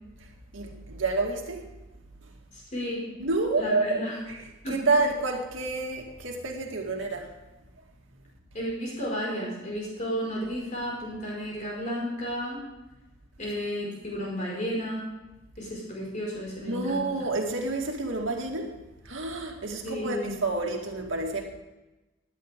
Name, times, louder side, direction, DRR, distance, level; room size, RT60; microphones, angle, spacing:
voice 1, 0.2-1.7 2.2-2.3 3.2-4.0 4.3-7.3 16.7-18.8 19.0-21.5, right 3 dB, 75° right, 1 dB, 2.1 m, -29 dB
voice 2, 2.5-3.0 3.6-4.2 4.6-4.8 8.5-12.6 13.4-15.1 15.6-17.3 19.8-20.4, equal, 40° left, -4 dB, 5.5 m, -33 dB
17.5 x 11.5 x 3.7 m, 1.1 s
head